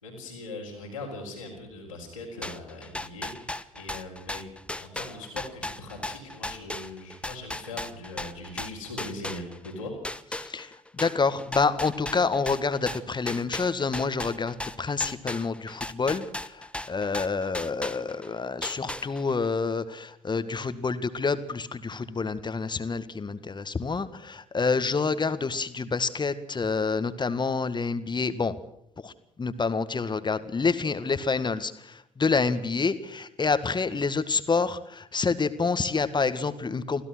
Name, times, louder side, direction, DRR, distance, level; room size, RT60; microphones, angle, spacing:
voice 1, 0.0-4.4 4.7-9.9, left 2 dB, 90° left, -7 dB, 4.3 m, -40 dB
sound 1, 2.4-9.7 10.0-18.3 18.6-19.4, left 1 dB, 5° left, 1.2 m, -36 dB
voice 2, 11.0-16.3 16.9-28.5 29.0-29.1 29.4-31.7 32.2-37.0, left 4 dB, 25° left, 12 dB, 1.8 m, -27 dB
25.5 x 16.5 x 6.2 m, 0.74 s
figure-of-eight pair, 50°, 17 cm